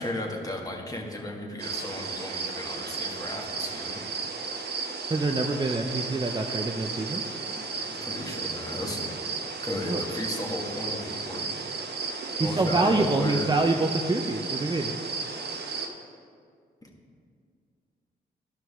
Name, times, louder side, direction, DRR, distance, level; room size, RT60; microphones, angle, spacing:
voice 1, 0.0-4.0 7.9-9.1 9.6-11.5 12.4-13.5 16.8-16.9, left 1 dB, 20° left, -1 dB, 1.8 m, -35 dB
sound 1, 1.6-15.9, right 4 dB, 55° right, 1.0 m, -34 dB
voice 2, 5.1-7.2 9.8-10.0 12.4-14.9, right 2 dB, 20° right, 3 dB, 0.6 m, -26 dB
12.5 x 5.9 x 3.6 m, 2.1 s
supercardioid pair, 50°, 20 cm